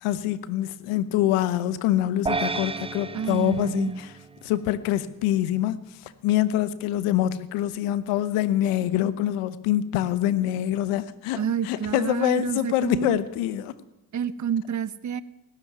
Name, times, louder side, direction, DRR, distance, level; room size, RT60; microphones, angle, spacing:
voice 1, 0.0-4.1 4.4-13.7, left 12 dB, 85° left, 0.9 m, -25 dB
sound 1, 2.3-4.7, right 4 dB, 10° right, 0.5 m, -32 dB
voice 2, 3.1-4.0 11.4-13.2 14.1-15.2, right 7 dB, 35° right, 0.8 m, -28 dB
17.0 x 7.0 x 9.3 m
supercardioid pair, 60°, 50 cm